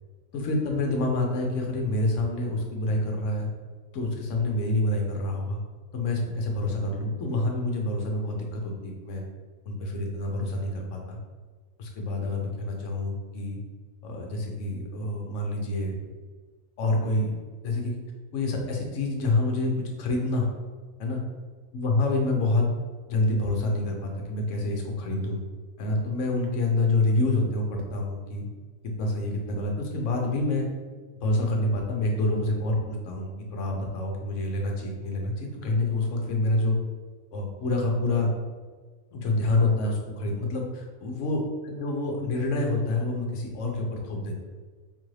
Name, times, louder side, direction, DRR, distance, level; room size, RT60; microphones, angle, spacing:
voice 1, 0.3-3.5 3.9-5.6 5.9-9.2 9.6-11.2 11.8-13.6 14.0-16.1 16.8-17.3 17.6-18.0 18.3-20.5 21.0-21.2 21.7-22.7 23.1-25.4 25.8-28.4 29.0-30.7 31.2-36.8 37.3-38.3 39.1-44.4, left 2 dB, 65° left, 1 dB, 1.0 m, -27 dB
3.7 x 2.5 x 3.1 m, 1.4 s
omnidirectional pair, 1.4 m